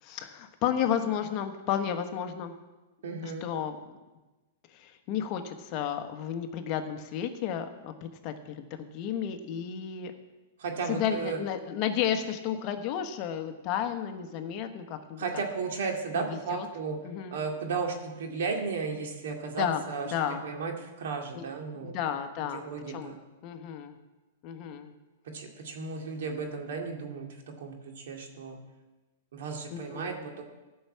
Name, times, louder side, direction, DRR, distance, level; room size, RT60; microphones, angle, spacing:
voice 1, 0.0-2.5 3.2-3.8 4.7-10.1 10.9-15.2 16.1-16.7 17.0-17.4 19.6-19.8 20.1-20.4 21.3-21.5 21.7-23.1 23.4-24.0 24.4-24.9 29.7-30.3, left 9 dB, 40° left, 7 dB, 1.1 m, -32 dB
voice 2, 3.0-3.5 10.6-11.4 15.2-17.0 17.3-20.1 20.4-21.9 22.5-23.2 25.3-28.6 29.3-30.4, right 4 dB, 70° right, 2 dB, 2.2 m, -34 dB
14.5 x 5.7 x 7.4 m, 1.1 s
hypercardioid pair, 140°, 0 cm